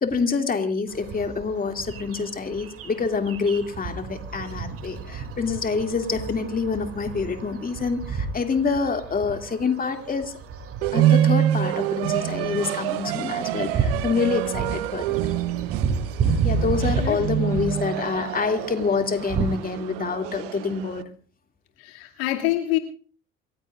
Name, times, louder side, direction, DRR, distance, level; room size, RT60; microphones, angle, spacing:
voice 1, 0.0-10.3 10.9-15.2 16.4-21.1, left 4 dB, 30° left, 5 dB, 2.5 m, -26 dB
sound 1, 0.9-19.5, right 5 dB, 50° right, 2.6 m, -32 dB
sound 2, 10.8-21.0, right 12 dB, 80° right, 0.9 m, -26 dB
voice 2, 21.8-22.8, left 15 dB, 80° left, 2 dB, 2.4 m, -26 dB
28.0 x 15.5 x 2.5 m, 0.39 s
hypercardioid pair, 70°, 30 cm